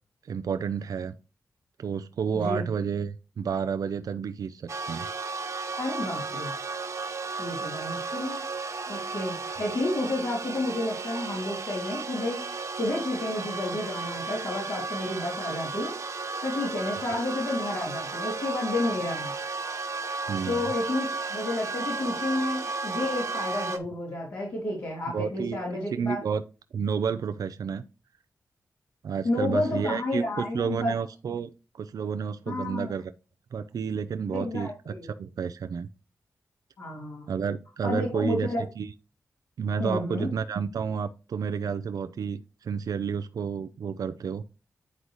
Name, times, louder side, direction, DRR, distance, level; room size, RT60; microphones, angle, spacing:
voice 1, 0.2-1.2 1.8-5.1 20.3-20.6 25.1-26.4 26.7-27.8 29.0-31.5 31.7-33.0 33.5-34.9 35.2-35.9 37.3-38.5 38.8-38.9 39.6-44.4, right 6 dB, 75° right, 0.5 m, -30 dB
voice 2, 2.3-2.7 5.8-6.5 7.4-8.4 8.9-12.4 12.7-15.9 16.4-19.3 20.5-26.2 29.2-30.9 32.5-32.9 34.3-35.1 36.8-37.3 37.8-38.6 39.8-40.3, left 2 dB, 75° left, 3.2 m, -31 dB
sound 1, 4.7-23.8, right 4 dB, 55° right, 1.4 m, -34 dB
9.6 x 4.0 x 3.1 m
cardioid pair, 65°, 6 cm